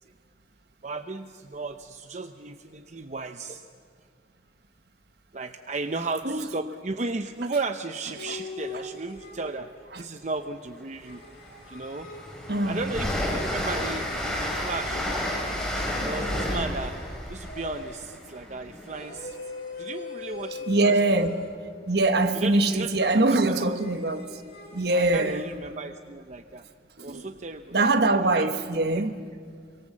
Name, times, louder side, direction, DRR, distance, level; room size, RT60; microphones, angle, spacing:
voice 1, 0.8-3.7 5.3-9.7 10.0-11.2 11.7-12.1 12.7-15.0 16.0-19.3 19.8-21.2 22.3-23.8 24.9-26.6 27.0-27.9 28.3-28.5 28.9-29.0, right 3 dB, 40° right, 0.7 m, -35 dB
sound 1, 8.1-9.8 11.0-14.1 14.6-16.9 17.4-18.2 18.8-21.6 22.0-25.6, left 3 dB, 55° left, 3.8 m, -42 dB
Train, 10.8-10.9 11.3-19.1, left 1 dB, 5° left, 5.3 m, -31 dB
voice 2, 12.5-12.8 20.7-21.3 21.9-24.3 24.7-25.4 27.0-27.3 27.7-29.2, right 2 dB, 60° right, 1.4 m, -23 dB
26.5 x 24.5 x 7.4 m
head